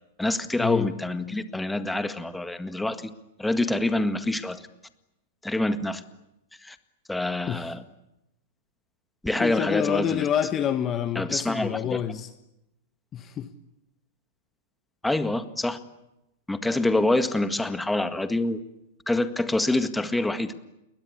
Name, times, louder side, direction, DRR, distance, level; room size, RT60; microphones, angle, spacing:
voice 1, 0.2-3.1 3.4-4.7 5.4-6.0 6.6-6.8 7.1-7.8 9.2-10.3 11.1-12.0 15.0-15.8 16.5-18.6 19.1-20.5, left 2 dB, 5° left, 1.8 m, -26 dB
voice 2, 9.4-12.3 13.1-13.5, left 9 dB, 30° left, 1.3 m, -27 dB
29.0 x 22.0 x 8.6 m
figure-of-eight pair, 100°, 0 cm